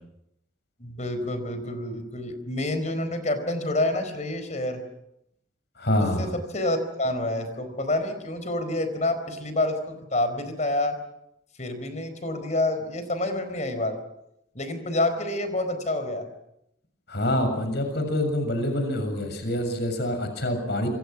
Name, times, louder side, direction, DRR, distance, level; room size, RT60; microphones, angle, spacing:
voice 1, 0.8-4.8 6.0-10.9 11.6-14.0 14.5-16.3, left 1 dB, 40° left, 9 dB, 4.5 m, -28 dB
voice 2, 5.8-6.3 17.1-20.9, left 1 dB, 60° left, 7 dB, 7.2 m, -26 dB
27.5 x 26.5 x 6.1 m, 0.80 s
head